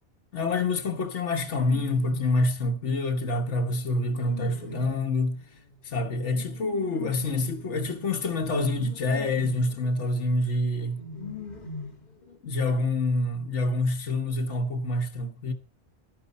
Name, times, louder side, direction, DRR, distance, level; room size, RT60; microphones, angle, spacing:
voice 1, 0.3-5.4 5.8-11.0 12.4-15.5, left 2 dB, 85° left, 1.6 m, -27 dB
sound 1, 1.5-2.4 3.2-12.4, left 4 dB, 40° left, 1.7 m, -43 dB
14.0 x 11.5 x 4.1 m
omnidirectional pair, 1.2 m